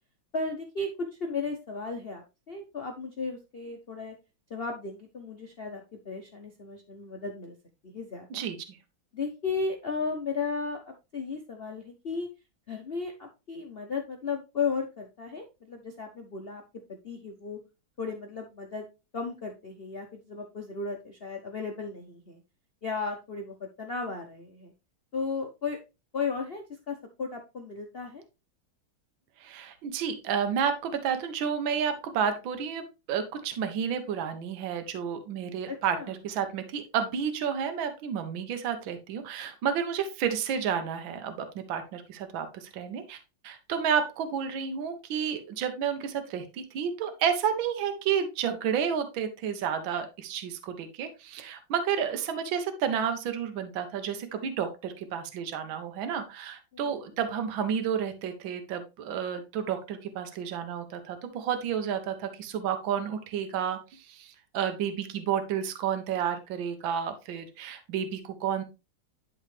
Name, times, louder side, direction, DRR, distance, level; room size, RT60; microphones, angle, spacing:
voice 1, 0.3-0.9 1.2-4.1 4.5-7.5 7.8-8.5 9.1-12.3 12.7-16.6 17.0-17.6 18.0-18.9 19.1-22.4 22.8-24.7 25.1-25.8 26.1-28.2 35.7-36.1 56.7-57.0, left 4 dB, 60° left, 3 dB, 0.6 m, -35 dB
voice 2, 8.3-8.8 29.4-43.2 43.4-68.6, right 7 dB, 70° right, 8 dB, 1.6 m, -31 dB
11.0 x 3.9 x 3.2 m, 0.27 s
omnidirectional pair, 2.3 m